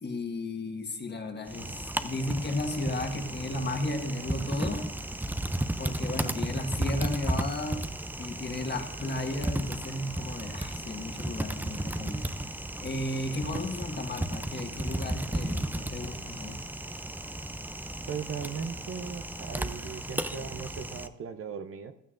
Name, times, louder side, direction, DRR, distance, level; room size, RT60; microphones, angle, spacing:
voice 1, 0.0-4.8 5.8-7.8 8.2-12.5 12.8-16.6, left 2 dB, 35° left, 4 dB, 1.6 m, -34 dB
Typing, 1.5-21.1, right 1 dB, 5° right, 0.5 m, -34 dB
voice 2, 18.1-21.9, right 6 dB, 45° right, 9 dB, 0.7 m, -38 dB
16.0 x 12.0 x 2.5 m, 0.88 s
cardioid pair, 90°, 30 cm